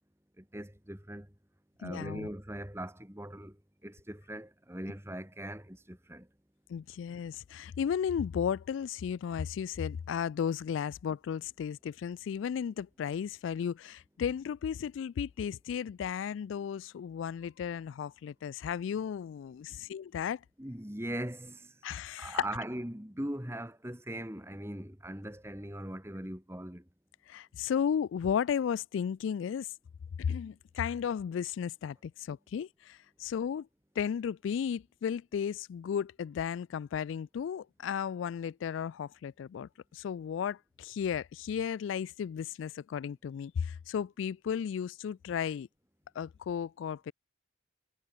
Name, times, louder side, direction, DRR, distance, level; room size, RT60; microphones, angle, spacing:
voice 1, 0.4-1.3 1.8-3.6 3.8-6.3 20.6-21.7 22.2-26.8, right 1 dB, 15° right, 2.8 m, -40 dB
voice 2, 1.8-2.3 6.7-20.4 21.8-22.4 27.3-29.7 30.2-33.7 34.0-45.7 46.2-47.1, left 7 dB, 80° left, 0.3 m, -34 dB
head